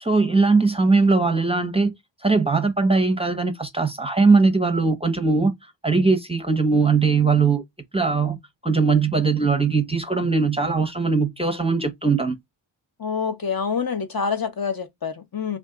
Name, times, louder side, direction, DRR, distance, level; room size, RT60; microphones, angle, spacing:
voice 1, 0.0-1.9 2.2-5.5 5.8-7.6 7.9-8.4 8.6-12.4, right 4 dB, 15° right, 0.6 m, -20 dB
voice 2, 13.0-15.6, left 6 dB, 50° left, 0.7 m, -26 dB
2.7 x 2.4 x 3.6 m
wide cardioid pair, 50°, 46 cm